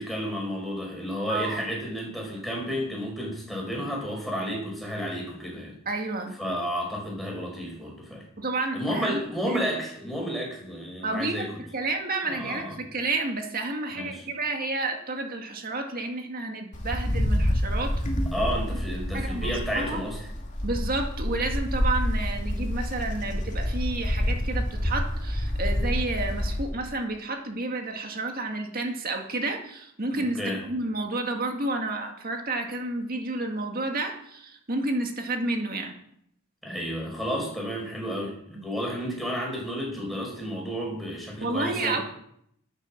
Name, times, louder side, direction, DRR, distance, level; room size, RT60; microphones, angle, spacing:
voice 1, 0.0-5.7 6.4-8.2 8.7-11.6 12.2-12.7 13.9-14.3 18.3-20.3 30.2-30.6 36.6-42.0, equal, ahead, -2 dB, 5.2 m, -31 dB
voice 2, 5.9-6.3 8.4-9.2 9.5-9.6 11.0-11.5 11.7-17.9 19.1-20.0 20.6-30.4 30.6-35.9 38.6-38.7 41.4-42.0, right 2 dB, 45° right, 4 dB, 2.0 m, -30 dB
Wind, 16.7-26.7, equal, 35° left, 2.4 m, -28 dB
12.0 x 9.6 x 7.4 m, 0.71 s
head